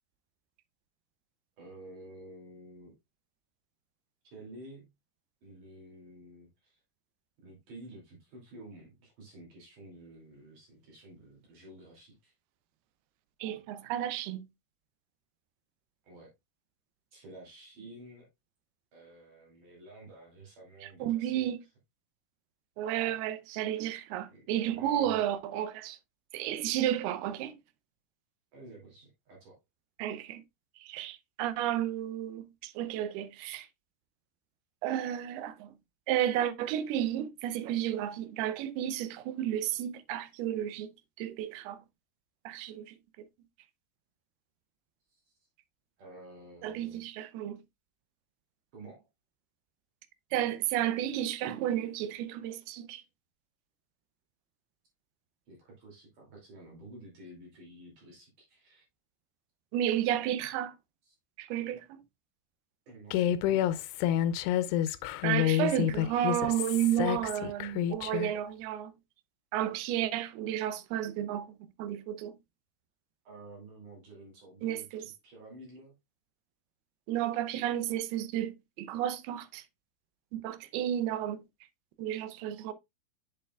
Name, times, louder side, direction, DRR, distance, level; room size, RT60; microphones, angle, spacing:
voice 1, 1.6-2.9 4.2-4.9 5.4-6.8 7.4-12.3 16.0-16.3 17.1-18.3 18.9-21.5 23.0-23.2 24.3-25.2 28.5-29.6 45.1-45.3 46.0-47.3 48.7-49.1 55.5-58.8 61.1-61.2 62.9-63.9 73.2-75.9, right 1 dB, 55° right, 4.0 m, -51 dB
voice 2, 13.4-14.5 21.0-21.6 22.8-26.0 26.3-27.6 30.0-30.4 30.8-33.7 34.8-35.7 36.1-40.9 41.2-41.8 42.5-43.0 46.6-47.6 50.3-53.0 59.7-60.7 61.4-62.0 65.2-68.9 69.5-72.3 74.6-75.1 77.1-79.6 80.3-81.4 82.0-82.7, right 11 dB, 80° right, 2.5 m, -32 dB
Human voice, 63.1-68.3, left 11 dB, 90° left, 2.7 m, -29 dB
7.9 x 6.7 x 2.3 m
omnidirectional pair, 4.7 m